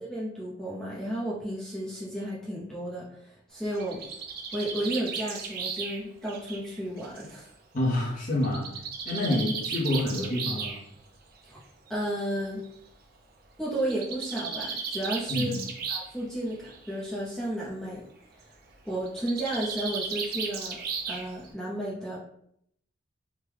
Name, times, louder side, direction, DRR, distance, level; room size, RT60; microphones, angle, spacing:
voice 1, 0.0-4.0 4.5-7.5 9.2-9.5 11.4-11.6 11.9-12.6 13.6-15.5 15.9-18.0 18.8-20.8 21.1-22.3, right 1 dB, 5° left, -6 dB, 0.6 m, -33 dB
Bird, 3.6-7.4 8.4-10.8 11.9-12.0 12.3-12.4 12.6-12.7 13.8-16.2 16.5-17.0 19.1-21.5, right 5 dB, 50° right, 0.5 m, -35 dB
voice 2, 7.7-8.7 9.0-10.8 15.3-15.6, left 1 dB, 40° left, -4 dB, 0.8 m, -27 dB
3.6 x 2.1 x 3.3 m, 0.72 s
head